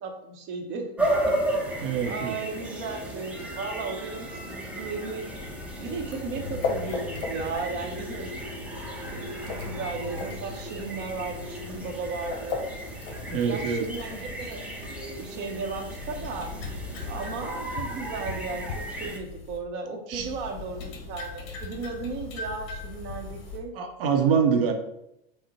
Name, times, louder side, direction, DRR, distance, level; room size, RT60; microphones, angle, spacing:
voice 1, 0.0-5.3 5.8-8.4 9.1-12.6 13.5-16.5 17.1-23.7 24.6-24.7, right 4 dB, 35° right, 3 dB, 0.8 m, -36 dB
sound 1, 1.0-19.2, right 1 dB, 5° right, 0.6 m, -34 dB
voice 2, 1.8-2.4 13.3-13.9 20.1-20.3 23.7-24.7, right 6 dB, 65° right, 5 dB, 0.8 m, -25 dB
sound 2, 5.2-19.6 20.1-23.6, left 4 dB, 45° left, 1.0 m, -38 dB
5.2 x 2.1 x 4.1 m, 0.82 s
hypercardioid pair, 120°, 30 cm